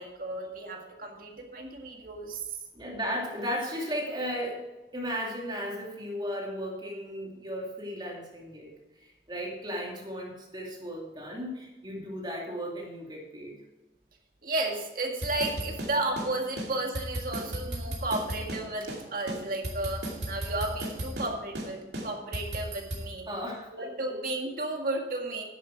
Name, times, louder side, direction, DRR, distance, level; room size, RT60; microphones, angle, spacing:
voice 1, 0.0-2.6 4.1-4.2 14.4-23.3 23.7-25.4, right 2 dB, 50° right, 2 dB, 1.9 m, -33 dB
voice 2, 2.7-4.7 4.9-8.7 9.0-13.6 23.3-24.2, equal, 25° right, -2 dB, 2.7 m, -35 dB
sound 1, 15.2-16.3 16.6-16.7 16.9-18.6 18.9-19.0 19.3-21.3 21.6-21.7 21.9-23.0, right 1 dB, 75° right, 2.6 m, -35 dB
10.5 x 9.2 x 4.8 m, 1.1 s
head